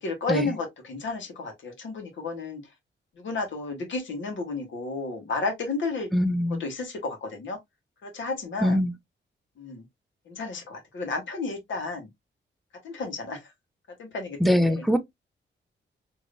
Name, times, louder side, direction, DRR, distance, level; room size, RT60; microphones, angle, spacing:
voice 1, 0.0-2.6 3.2-6.1 6.5-7.6 8.0-8.8 9.6-9.8 10.3-12.1 12.8-13.5 14.0-14.8, left 3 dB, 75° left, 1.4 m, -32 dB
voice 2, 6.1-6.6 8.6-8.9 14.4-15.0, equal, ahead, 0.4 m, -22 dB
3.3 x 3.0 x 2.5 m
wide cardioid pair, 170°, 20 cm